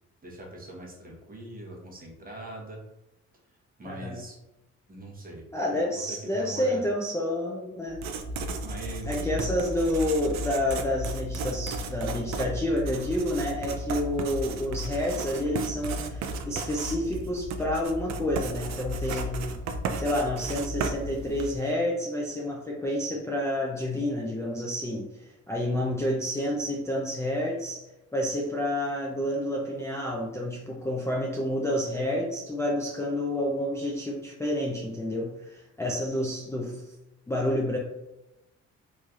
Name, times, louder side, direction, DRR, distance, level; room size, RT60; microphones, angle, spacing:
voice 1, 0.2-2.8 3.8-4.4 4.9-5.8 6.1-6.8 8.6-9.2, right 1 dB, 30° right, -2 dB, 1.0 m, -42 dB
voice 2, 3.9-4.2 5.5-8.0 9.1-19.5 20.0-27.8 28.1-36.8 37.3-37.8, left 1 dB, 10° left, -4 dB, 0.4 m, -29 dB
Writing, 7.9-21.7, right 2 dB, 65° right, 0.5 m, -34 dB
3.2 x 2.7 x 2.4 m, 0.93 s
cardioid pair, 90°, 30 cm